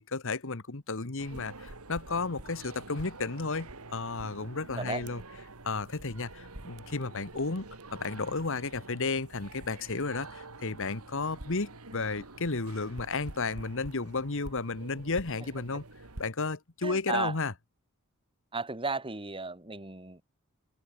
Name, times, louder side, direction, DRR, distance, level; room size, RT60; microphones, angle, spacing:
voice 1, 0.0-5.2 5.6-15.8 16.2-17.5, left 3 dB, 65° left, 1.5 m, -33 dB
sound 1, 1.2-16.3, right 2 dB, 85° right, 2.8 m, -47 dB
voice 2, 16.8-17.3 18.5-20.2, right 3 dB, 25° right, 3.4 m, -34 dB
head